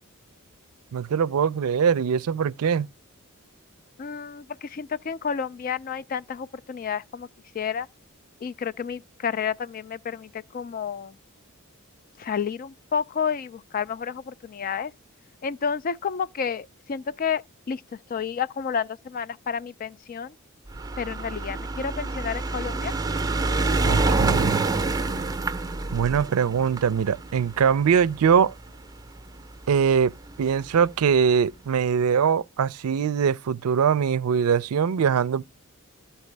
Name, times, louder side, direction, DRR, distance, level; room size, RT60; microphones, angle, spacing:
voice 1, 0.9-2.9 23.8-24.6 25.9-28.5 29.7-30.1 30.4-35.4, right 7 dB, 85° right, 0.4 m, -22 dB
voice 2, 4.0-7.3 7.5-7.9 8.4-11.1 12.2-14.9 15.4-20.4 21.0-22.9, left 6 dB, 40° left, 0.4 m, -30 dB
sound 1, 20.7-29.2 30.0-30.1 30.3-30.4 30.7-30.8, right 3 dB, 15° right, 0.7 m, -26 dB
13.0 x 4.4 x 3.3 m
head